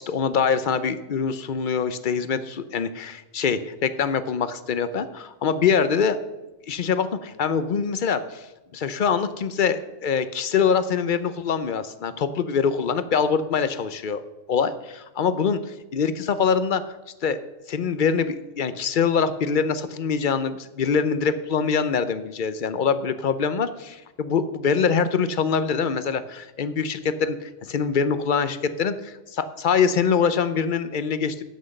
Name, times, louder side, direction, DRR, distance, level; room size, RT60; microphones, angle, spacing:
voice 1, 0.1-6.2 6.7-8.5 8.7-14.2 14.5-16.8 17.2-17.4 17.7-31.4, left 6 dB, 50° left, 12 dB, 0.6 m, -24 dB
13.5 x 6.0 x 6.5 m, 1.0 s
omnidirectional pair, 1.4 m